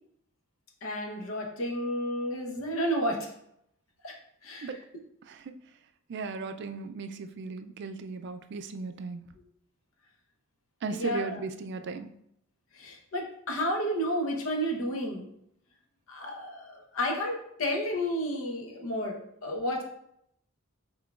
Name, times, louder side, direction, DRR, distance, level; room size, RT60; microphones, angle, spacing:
voice 1, 0.8-3.3 4.0-4.1 4.4-4.8 10.9-11.4 12.7-15.3 16.1-19.8, equal, 90° left, 2 dB, 0.9 m, -31 dB
voice 2, 6.1-9.2 10.8-12.1, right 4 dB, 55° right, 9 dB, 0.3 m, -36 dB
5.8 x 3.7 x 2.4 m, 0.74 s
head